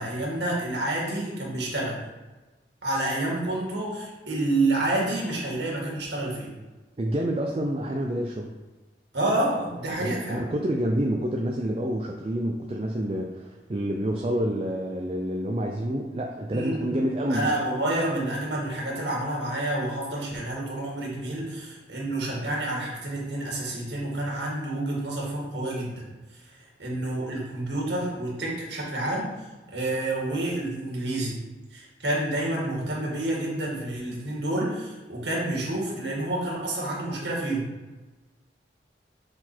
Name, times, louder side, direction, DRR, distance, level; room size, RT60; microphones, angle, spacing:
voice 1, 0.0-2.0 2.8-6.5 9.1-10.5 16.5-16.9 17.3-26.0 26.3-29.3 29.7-31.4 31.7-37.7, right 1 dB, 85° right, -3 dB, 2.1 m, -29 dB
voice 2, 7.0-8.5 10.0-17.5, right 1 dB, 30° right, 0 dB, 0.4 m, -28 dB
6.7 x 4.1 x 4.4 m, 1.2 s
head